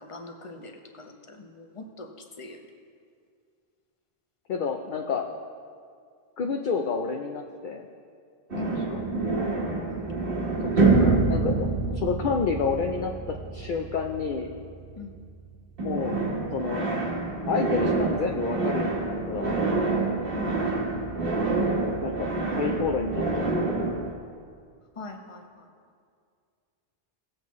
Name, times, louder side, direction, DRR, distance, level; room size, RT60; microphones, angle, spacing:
voice 1, 0.0-2.6 8.6-8.8 9.9-10.1 15.0-15.2 20.3-20.8 24.9-25.7, left 2 dB, 35° left, 3 dB, 0.9 m, -42 dB
voice 2, 4.5-5.3 6.4-7.9 8.9-9.0 10.6-14.5 15.8-16.2 16.5-16.9 17.5-19.6 22.0-23.9, left 5 dB, 55° left, 2 dB, 0.7 m, -30 dB
sound 1, 8.5-15.5 15.8-24.1, right 3 dB, 65° right, 1.4 m, -27 dB
18.5 x 7.6 x 3.1 m, 2.2 s
omnidirectional pair, 1.0 m